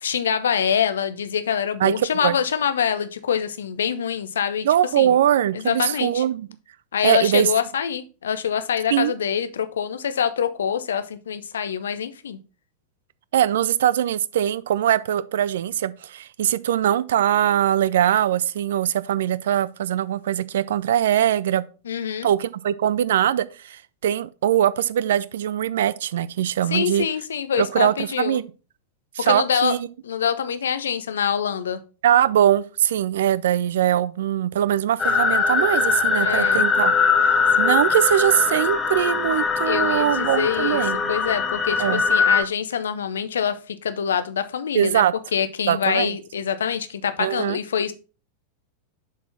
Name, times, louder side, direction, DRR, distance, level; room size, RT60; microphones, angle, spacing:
voice 1, 0.0-4.7 5.0-5.1 5.5-6.2 6.9-12.4 21.9-22.3 26.7-28.4 29.2-29.7 30.0-31.8 36.2-36.7 39.6-40.8 41.1-45.0 45.3-47.9, left 8 dB, 65° left, 0.6 m, -25 dB
voice 2, 1.8-2.4 4.6-6.5 7.0-7.5 8.9-9.1 13.3-21.7 22.2-27.1 27.6-28.4 29.1-29.8 32.0-36.9 37.2-37.3 37.6-41.0 41.8-42.0 44.7-45.1 45.7-46.1 47.2-47.6, right 11 dB, 60° right, 0.4 m, -21 dB
sound 1, 35.0-42.4, left 5 dB, 20° left, 0.9 m, -21 dB
7.2 x 4.3 x 4.2 m
figure-of-eight pair, 90°, 0 cm